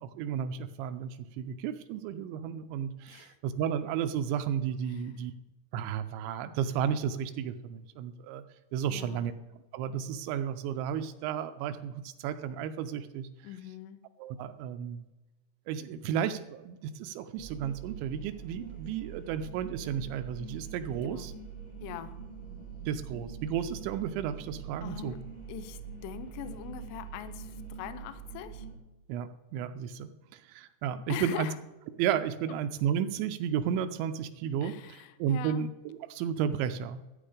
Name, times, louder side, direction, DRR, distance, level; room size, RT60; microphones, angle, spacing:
voice 1, 0.0-5.3 5.7-8.4 8.7-9.3 9.7-13.3 14.2-15.0 15.7-21.3 22.9-25.2 29.1-31.5 32.0-34.7 35.2-37.0, right 8 dB, 80° right, 10 dB, 2.8 m, -33 dB
voice 2, 8.9-9.3 13.4-14.0 21.0-21.3 21.8-22.2 24.8-25.2 25.5-28.7 31.1-31.6 34.6-35.6, left 10 dB, 75° left, 12 dB, 2.7 m, -42 dB
sound 1, 17.3-28.8, right 7 dB, 15° left, 1.3 m, -44 dB
sound 2, 19.4-25.8, left 6 dB, 60° left, 3.4 m, -56 dB
13.5 x 9.1 x 5.0 m, 1.1 s
omnidirectional pair, 5.5 m